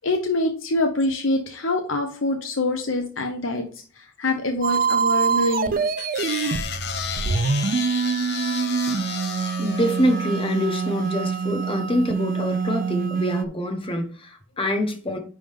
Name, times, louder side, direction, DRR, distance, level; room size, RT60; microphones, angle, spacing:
voice 1, 0.0-3.6 4.0-5.8, left 2 dB, 75° left, 4 dB, 1.0 m, -25 dB
sound 1, 4.6-13.5, right 5 dB, 45° right, 0.4 m, -25 dB
sound 2, 6.0-11.3, left 8 dB, 55° left, 0.6 m, -33 dB
voice 2, 9.6-15.2, equal, 25° left, 5 dB, 1.2 m, -25 dB
10.0 x 3.7 x 3.6 m, 0.42 s
head